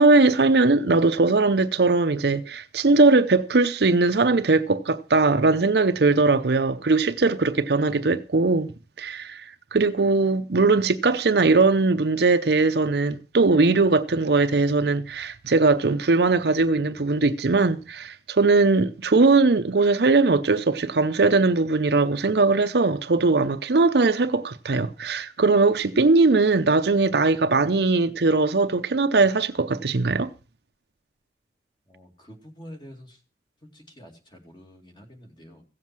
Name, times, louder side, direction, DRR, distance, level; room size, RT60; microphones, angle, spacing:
voice 1, 0.0-8.7 9.0-30.3, right 3 dB, 70° right, 0.7 m, -20 dB
voice 2, 31.9-33.2 33.7-35.6, equal, 25° left, 2.4 m, -47 dB
16.0 x 7.4 x 6.0 m
head